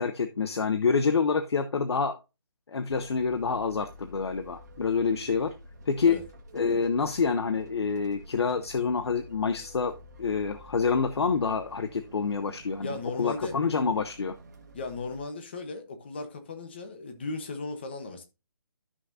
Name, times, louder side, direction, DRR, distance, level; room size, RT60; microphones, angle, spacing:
voice 1, 0.0-2.2 2.7-5.5 5.9-6.2 6.5-9.9 10.2-14.3, left 5 dB, 75° left, 0.8 m, -27 dB
sound 1, 2.9-15.2, right 1 dB, 40° right, 1.5 m, -49 dB
voice 2, 12.8-13.6 14.7-18.2, left 3 dB, 25° left, 1.0 m, -36 dB
12.5 x 5.8 x 2.7 m
hypercardioid pair, 180°, 14 cm